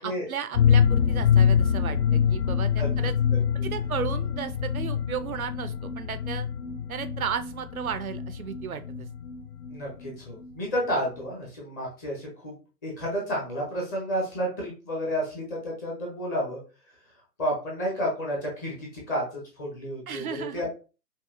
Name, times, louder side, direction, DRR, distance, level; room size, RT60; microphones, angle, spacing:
voice 1, 0.0-3.2 3.6-6.5 6.9-9.1 20.1-20.7, right 8 dB, 60° right, 11 dB, 0.6 m, -34 dB
sound 1, 0.5-10.1 10.4-10.5 10.8-10.9, left 7 dB, 75° left, 0.7 m, -25 dB
voice 2, 9.7-12.6 12.8-16.6 17.4-19.2 19.6-20.3 20.5-20.7, equal, 10° left, -3 dB, 0.6 m, -31 dB
5.4 x 2.3 x 2.5 m, 0.34 s
figure-of-eight pair, 130°, 49 cm